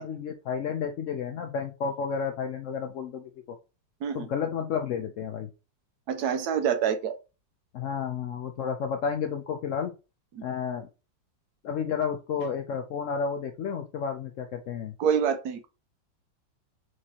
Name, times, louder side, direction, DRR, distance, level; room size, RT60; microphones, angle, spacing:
voice 1, 0.0-3.2 4.1-5.5 7.7-9.9 10.4-10.9 11.6-14.9, left 6 dB, 90° left, 0.6 m, -31 dB
voice 2, 6.1-7.1 10.3-10.4 15.0-15.7, right 7 dB, 70° right, 1.1 m, -26 dB
4.6 x 3.8 x 2.8 m
omnidirectional pair, 2.0 m